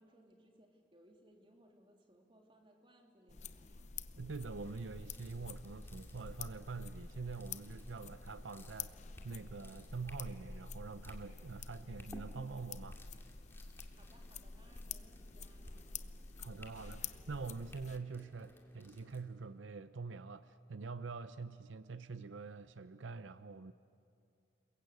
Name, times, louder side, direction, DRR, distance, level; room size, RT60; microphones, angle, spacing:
voice 1, 0.0-3.8 13.7-15.7, right 1 dB, 25° right, 3.1 m, -65 dB
sound 1, 3.3-18.0, left 5 dB, 35° left, 0.7 m, -48 dB
voice 2, 4.1-9.0 9.2-13.0 16.4-23.7, right 4 dB, 85° right, 0.6 m, -45 dB
sound 2, 4.3-19.2, left 1 dB, 10° left, 2.3 m, -60 dB
30.0 x 22.0 x 8.3 m
head